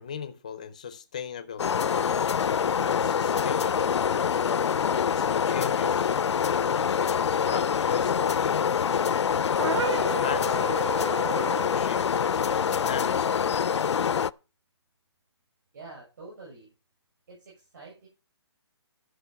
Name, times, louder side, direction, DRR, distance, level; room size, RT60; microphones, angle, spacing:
voice 1, 0.0-1.7 2.7-4.0 5.0-6.2 6.8-8.7 9.3-10.7 11.6-13.9, left 7 dB, 15° left, 0.4 m, -38 dB
sound 1, 1.6-14.3, left 7 dB, 85° left, 0.5 m, -25 dB
sound 2, 9.6-11.8, right 5 dB, 85° right, 1.3 m, -32 dB
voice 2, 15.7-16.7 17.3-18.1, right 3 dB, 45° right, 6.9 m, -46 dB
12.0 x 6.4 x 5.7 m
hypercardioid pair, 180°, 14 cm